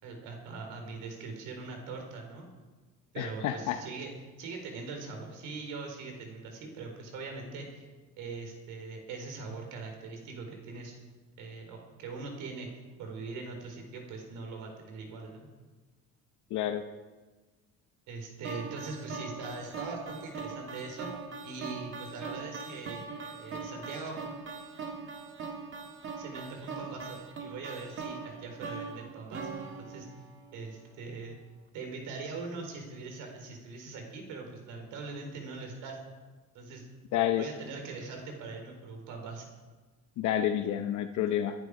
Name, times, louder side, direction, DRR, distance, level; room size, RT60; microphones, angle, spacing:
voice 1, 0.0-2.5 3.1-4.1 4.4-7.8 8.2-11.0 11.4-12.7 13.0-15.5 18.1-21.1 21.4-23.0 23.4-24.2 26.2-30.1 30.5-31.4 31.7-36.0 36.5-36.9 37.4-39.5, right 4 dB, 80° right, 3 dB, 4.2 m, -41 dB
voice 2, 3.2-3.8 16.5-16.8 37.1-37.5 40.2-41.5, left 11 dB, 70° left, 7 dB, 0.9 m, -29 dB
sound 1, 18.4-30.6, right 4 dB, 40° right, 1.7 m, -41 dB
23.5 x 11.0 x 4.9 m, 1.3 s
cardioid pair, 155°, 31 cm